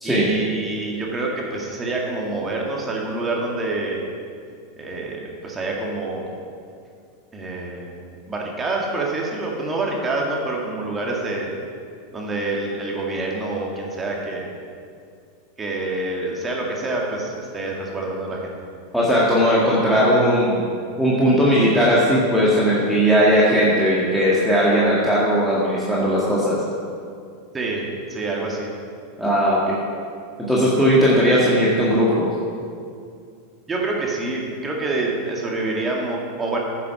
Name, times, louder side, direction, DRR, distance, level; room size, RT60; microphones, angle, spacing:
voice 1, 0.0-4.0 4.8-6.3 7.3-11.5 12.1-14.5 15.6-18.5 27.5-28.7 33.7-36.6, right 2 dB, 20° right, -2 dB, 2.1 m, -27 dB
voice 2, 18.9-20.6 21.0-26.6 29.2-29.8 30.5-32.3, equal, ahead, -7 dB, 2.0 m, -18 dB
10.0 x 7.3 x 5.9 m, 2.3 s
hypercardioid pair, 105°, 0 cm